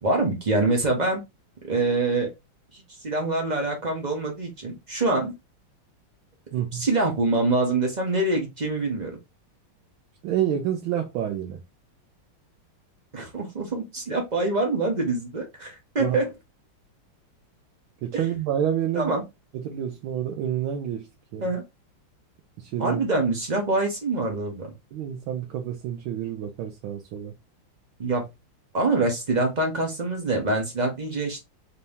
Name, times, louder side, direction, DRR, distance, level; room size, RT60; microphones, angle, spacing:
voice 1, 0.0-1.2 1.6-2.3 3.0-5.3 6.7-9.2 13.1-16.3 18.9-19.2 21.4-21.6 22.8-24.7 28.0-28.2 28.7-31.4, right 2 dB, 40° right, 0.6 m, -25 dB
voice 2, 6.5-6.9 10.2-11.6 16.0-16.2 18.0-19.1 19.5-21.5 22.6-23.0 24.9-27.3, right 10 dB, 80° right, 1.5 m, -28 dB
4.3 x 2.7 x 3.4 m
omnidirectional pair, 2.3 m